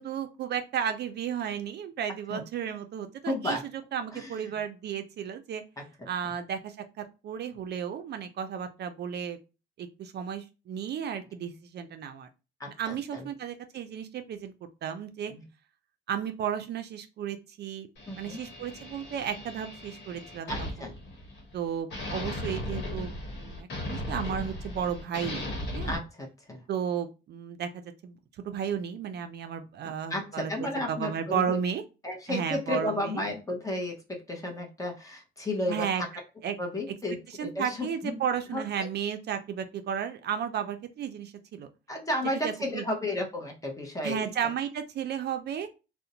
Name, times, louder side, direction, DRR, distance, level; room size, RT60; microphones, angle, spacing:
voice 1, 0.0-3.6 3.9-5.6 6.1-9.4 9.8-12.3 12.7-15.3 16.1-17.9 18.2-20.9 21.5-25.5 25.7-26.0 26.7-28.2 28.4-31.8 32.3-33.2 35.7-36.0 36.4-36.6 37.3-41.7 42.4-42.8 44.0-45.7, right 8 dB, 55° right, 8 dB, 0.4 m, -33 dB
voice 2, 3.2-3.7 4.1-4.6 5.8-6.1 12.6-13.3 15.3-15.4 18.1-18.4 20.5-21.0 25.9-26.6 29.8-31.6 32.0-36.1 36.6-38.2 38.5-38.6 41.9-44.3, left 1 dB, 15° left, 2 dB, 0.7 m, -33 dB
sound 1, 18.0-21.6 21.9-26.0, left 1 dB, 60° left, 1.0 m, -37 dB
2.5 x 2.0 x 2.7 m, 0.30 s
cardioid pair, 90°, 20 cm